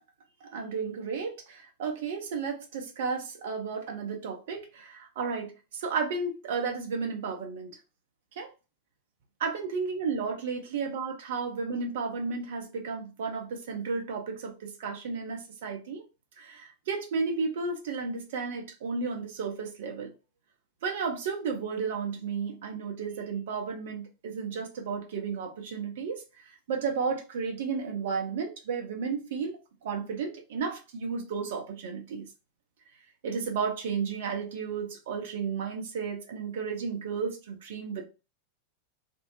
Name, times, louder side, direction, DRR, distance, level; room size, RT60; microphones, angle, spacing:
voice 1, 0.5-7.8 8.4-8.5 9.4-16.0 16.4-20.1 20.8-26.2 26.7-32.3 33.2-38.1, right 5 dB, 55° right, 0.7 m, -33 dB
2.6 x 2.0 x 2.7 m
figure-of-eight pair, 90°, 0 cm